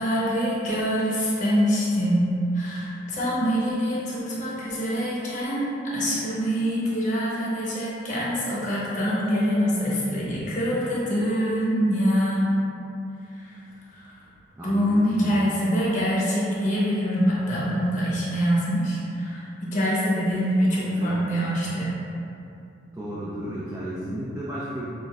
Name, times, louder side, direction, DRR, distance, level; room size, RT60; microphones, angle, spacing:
voice 1, 0.0-2.3 2.5-12.6 13.3-13.6 13.9-14.2 14.6-21.9, equal, 40° left, -7 dB, 0.9 m, -25 dB
voice 2, 14.6-15.5 20.9-21.2 22.9-24.8, equal, 15° right, -8 dB, 0.4 m, -33 dB
6.1 x 2.5 x 2.3 m, 2.7 s
head